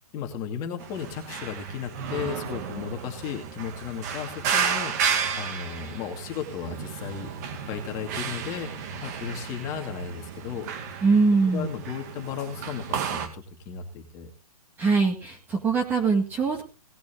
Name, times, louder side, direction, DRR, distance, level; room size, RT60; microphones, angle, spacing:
voice 1, 0.1-7.3 7.7-8.7 9.0-10.7 11.5-14.3, left 7 dB, 20° left, 4 dB, 2.3 m, -35 dB
sound 1, 0.8-13.3, right 7 dB, 30° right, 2.3 m, -32 dB
voice 2, 11.0-11.7 14.8-16.6, right 4 dB, 10° right, 3 dB, 1.8 m, -22 dB
18.5 x 10.5 x 3.7 m, 0.33 s
hypercardioid pair, 170°, 19 cm